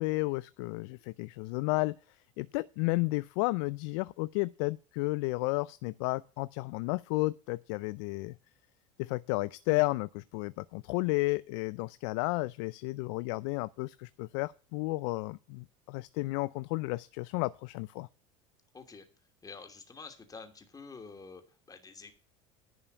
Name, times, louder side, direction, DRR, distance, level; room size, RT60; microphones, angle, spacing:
voice 1, 0.0-2.0 2.4-8.3 9.0-18.1, left 23 dB, 70° left, 0.4 m, -32 dB
voice 2, 18.7-19.1 19.4-22.1, left 4 dB, 20° left, 2.8 m, -48 dB
11.0 x 5.6 x 8.3 m
hypercardioid pair, 85°, 16 cm